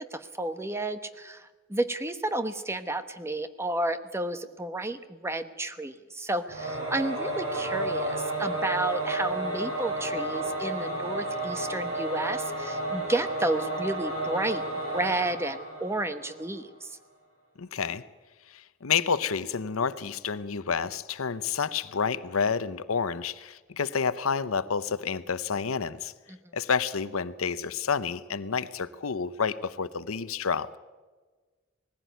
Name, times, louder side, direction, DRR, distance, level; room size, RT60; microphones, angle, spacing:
voice 1, 0.1-17.0 26.3-26.4, right 1 dB, 10° right, 10 dB, 1.0 m, -32 dB
Singing / Musical instrument, 6.5-16.5, right 2 dB, 85° right, 6.6 m, -32 dB
voice 2, 17.6-18.0 18.5-26.1 26.5-30.7, left 6 dB, 85° left, 15 dB, 0.8 m, -29 dB
19.5 x 15.5 x 9.3 m, 1.3 s
head